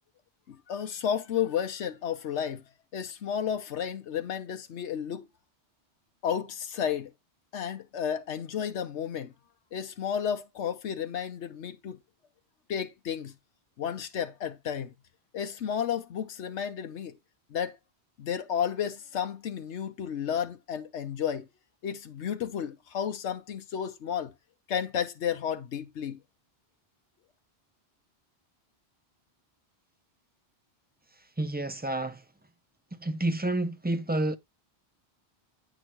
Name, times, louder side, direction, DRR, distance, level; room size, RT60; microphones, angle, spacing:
voice 1, 0.7-2.6 2.9-5.3 6.2-7.1 7.5-9.3 9.7-12.0 12.7-13.3 13.8-14.9 15.3-17.1 17.5-17.7 18.2-21.4 21.8-24.3 24.7-26.2, left 8 dB, 90° left, 1.1 m, -32 dB
voice 2, 31.4-32.2 32.9-34.4, right 2 dB, 10° right, 0.5 m, -29 dB
9.0 x 6.4 x 2.9 m
omnidirectional pair, 1.1 m